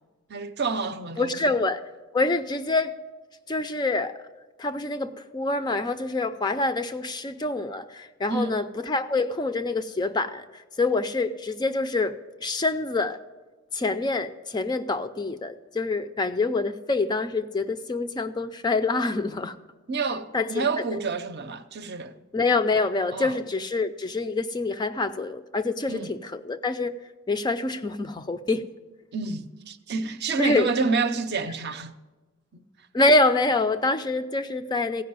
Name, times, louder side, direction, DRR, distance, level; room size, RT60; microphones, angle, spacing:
voice 1, 0.3-1.5 8.3-8.6 19.9-22.2 23.1-23.4 25.9-26.2 29.1-31.9 32.5-32.6, right 4 dB, 50° right, 0.6 m, -29 dB
voice 2, 1.2-1.8 2.1-2.9 3.5-4.2 4.6-12.2 12.4-13.2 13.7-19.6 20.3-20.8 22.3-27.0 27.3-28.7 30.4-30.7 32.9-35.0, left 3 dB, 20° left, 0.4 m, -26 dB
15.5 x 5.4 x 9.4 m
head